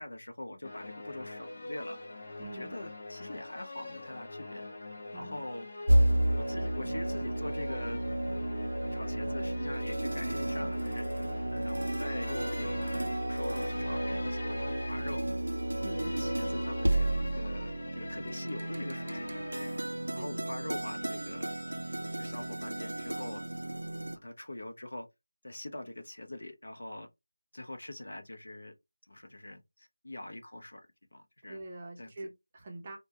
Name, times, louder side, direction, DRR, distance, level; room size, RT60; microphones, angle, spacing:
voice 1, 0.0-2.0 2.4-4.6 5.1-5.7 6.3-8.0 8.9-11.1 11.5-15.2 15.8-19.3 20.1-21.5 22.2-23.4 24.2-25.1 25.4-27.1 27.5-28.7 29.1-30.8 31.1-31.6 32.0-32.1, left 1 dB, 80° left, 0.6 m, -43 dB
sound 1, 0.6-19.8, left 2 dB, 40° left, 0.6 m, -43 dB
voice 2, 2.4-2.7 5.1-5.4 15.8-16.1 20.2-20.3 31.5-33.0, right 2 dB, 20° right, 0.5 m, -44 dB
sound 2, 5.9-24.2, right 1 dB, 85° right, 0.3 m, -32 dB
2.1 x 2.1 x 2.8 m
figure-of-eight pair, 175°, 0 cm